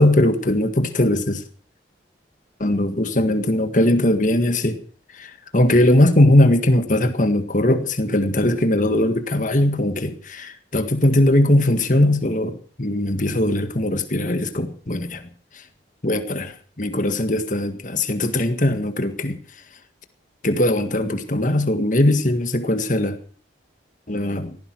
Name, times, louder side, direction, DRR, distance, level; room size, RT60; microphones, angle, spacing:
voice 1, 0.0-1.4 2.6-4.8 5.2-15.2 16.0-19.4 20.4-23.2 24.1-24.6, left 1 dB, 45° left, 1.7 m, -20 dB
18.0 x 15.0 x 4.7 m
head